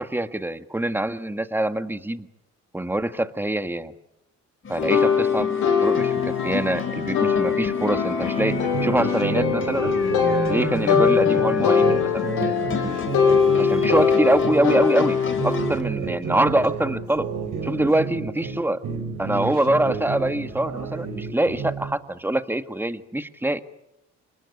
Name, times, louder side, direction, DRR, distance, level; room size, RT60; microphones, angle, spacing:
voice 1, 0.0-2.3 2.7-3.9 4.7-5.5 5.8-8.5 8.8-9.9 10.4-12.2 13.5-15.2 15.4-17.3 17.6-18.8 19.2-23.6, right 1 dB, 5° right, 10 dB, 1.6 m, -24 dB
sound 1, 4.6-15.8, left 6 dB, 40° left, 2.9 m, -32 dB
sound 2, 4.8-15.7, left 6 dB, 80° left, 6.4 m, -22 dB
sound 3, 8.4-14.9 15.3-18.6 18.8-22.0, right 5 dB, 75° right, 5.5 m, -31 dB
27.0 x 21.0 x 9.6 m, 0.88 s
cardioid pair, 90°, 30 cm